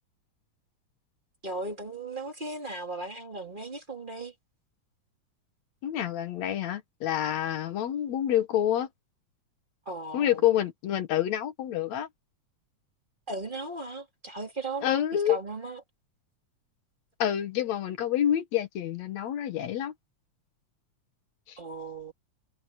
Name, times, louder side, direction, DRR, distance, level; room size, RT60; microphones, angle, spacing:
voice 1, 1.4-4.3 9.8-10.4 13.3-15.8 21.6-22.1, right 2 dB, 15° right, 2.7 m, -37 dB
voice 2, 5.8-8.9 10.1-12.1 14.8-15.4 17.2-19.9 21.5-21.6, left 11 dB, 70° left, 2.4 m, -27 dB
omnidirectional pair, 3.4 m